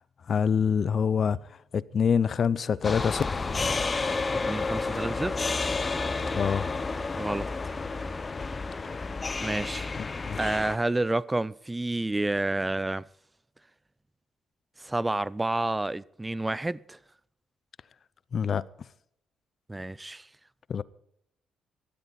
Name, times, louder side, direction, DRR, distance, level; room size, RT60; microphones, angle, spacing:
voice 1, 0.0-3.2 6.3-6.7 10.0-10.6 18.3-18.9 20.7-20.8, left 7 dB, 50° left, 0.5 m, -26 dB
sound 1, 2.8-10.8, left 3 dB, 30° left, 0.9 m, -30 dB
voice 2, 4.4-5.4 7.2-7.5 9.4-9.9 10.4-13.1 14.8-17.0 19.7-20.3, right 2 dB, 15° right, 0.4 m, -29 dB
16.0 x 13.5 x 4.2 m
cardioid pair, 90°, 0 cm